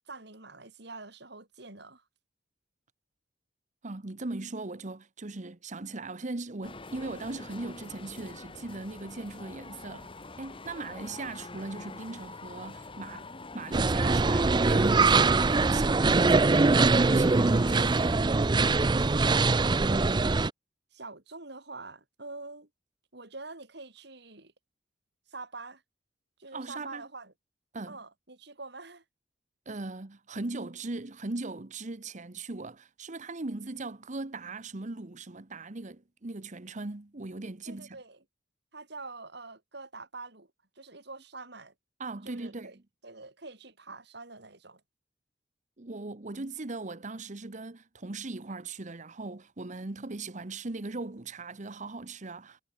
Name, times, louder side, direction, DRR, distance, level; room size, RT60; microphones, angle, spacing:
voice 1, 0.0-2.0 19.8-20.4 20.9-22.7 23.1-24.5 25.3-25.8 26.4-27.3 27.9-29.0 37.7-38.2 38.7-40.5 40.8-41.7 42.2-42.7 43.0-44.8, right 3 dB, 65° right, 6.0 m, -45 dB
voice 2, 3.8-10.1 10.4-18.1 26.5-27.1 27.7-28.0 29.7-38.0 42.0-42.7 45.8-52.6, right 2 dB, 40° right, 1.1 m, -39 dB
sound 1, 6.6-18.2, left 3 dB, 30° left, 1.8 m, -45 dB
sound 2, 13.7-20.5, right 3 dB, 25° right, 0.5 m, -23 dB
head